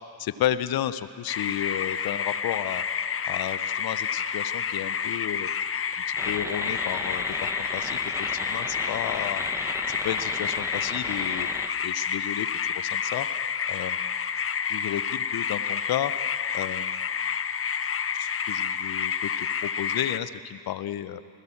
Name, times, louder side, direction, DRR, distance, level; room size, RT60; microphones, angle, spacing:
voice 1, 0.2-2.8 3.2-5.5 6.1-9.4 9.9-11.5 11.8-12.5 12.7-13.3 13.7-14.1 14.7-16.1 16.5-17.1 18.1-21.2, left 11 dB, 45° left, 14 dB, 1.1 m, -32 dB
sound 1, 1.3-20.2, left 7 dB, 25° left, 0.9 m, -29 dB
sound 2, 6.2-11.7, right 1 dB, 5° right, 2.1 m, -36 dB
27.5 x 20.5 x 7.3 m, 2.2 s
figure-of-eight pair, 45°, 49 cm